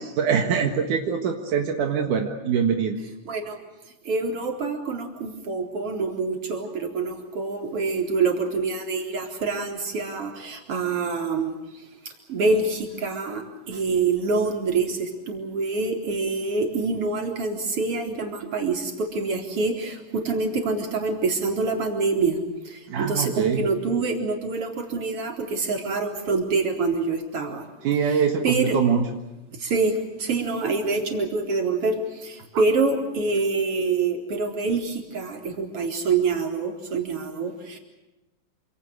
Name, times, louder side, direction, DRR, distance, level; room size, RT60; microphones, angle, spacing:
voice 1, 0.0-3.0 22.9-23.7 27.8-29.1, right 7 dB, 60° right, 4 dB, 2.1 m, -23 dB
voice 2, 3.2-3.6 4.0-11.6 12.3-22.4 22.6-27.6 28.0-28.8 29.6-37.8, right 4 dB, 30° right, 3 dB, 4.2 m, -26 dB
28.0 x 27.0 x 6.6 m, 1.0 s
omnidirectional pair, 5.9 m